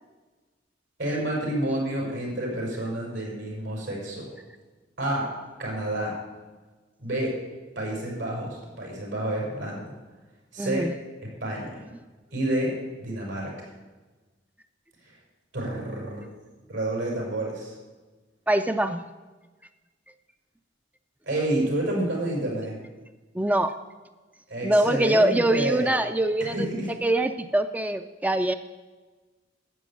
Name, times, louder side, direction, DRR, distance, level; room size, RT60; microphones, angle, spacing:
voice 1, 1.0-4.3 5.0-5.3 5.6-6.1 7.0-7.3 7.8-9.9 10.5-10.9 11.2-11.8 12.3-12.7 13.0-13.5 15.0-15.1 15.5-16.3 16.7-17.8 21.3-22.8 24.5-25.9 26.4-26.9, right 1 dB, 80° right, -2 dB, 5.9 m, -29 dB
voice 2, 10.6-10.9 18.5-19.0 23.3-23.7 24.6-28.6, right 1 dB, 10° right, 9 dB, 0.4 m, -24 dB
12.5 x 8.3 x 8.5 m, 1.3 s
head